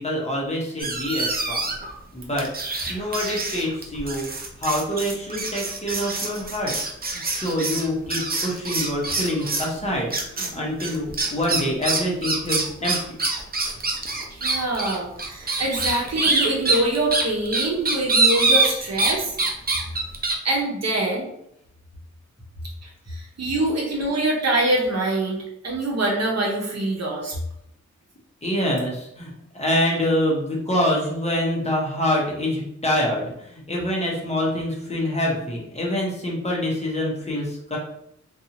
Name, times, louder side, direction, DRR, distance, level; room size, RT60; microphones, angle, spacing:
voice 1, 0.0-1.6 2.1-2.5 2.9-4.3 4.6-6.7 7.3-13.0 28.4-37.8, left 1 dB, 20° left, -3 dB, 0.9 m, -25 dB
sound 1, 0.8-1.9 2.4-9.7 10.1-10.5 10.8-19.1 19.4-20.3, right 3 dB, 30° right, 0.6 m, -25 dB
voice 2, 14.3-19.4 20.4-21.3 22.8-27.4, right 2 dB, 60° right, -1 dB, 0.8 m, -24 dB
2.6 x 2.4 x 2.8 m, 0.77 s
wide cardioid pair, 85°, 29 cm